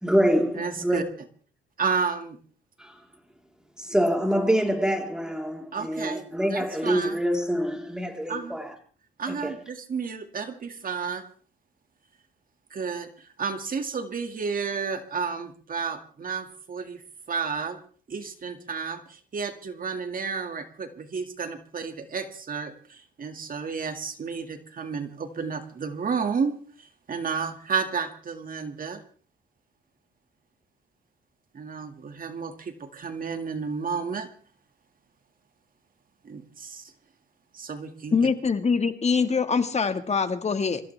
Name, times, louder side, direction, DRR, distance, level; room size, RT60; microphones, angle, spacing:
voice 1, 0.0-1.0 2.8-2.9 3.8-8.7 9.3-9.5, equal, 5° right, 3.7 m, -25 dB
voice 2, 0.6-1.0 1.8-2.4 5.7-6.3 6.5-7.2 8.3-8.6 9.2-11.2 12.7-17.8 18.1-29.0 31.5-34.3 36.2-36.9 37.5-38.2, right 5 dB, 45° right, 2.1 m, -32 dB
voice 3, 38.1-40.8, left 5 dB, 35° left, 1.7 m, -24 dB
26.0 x 15.0 x 3.4 m
cardioid pair, 90°, 20 cm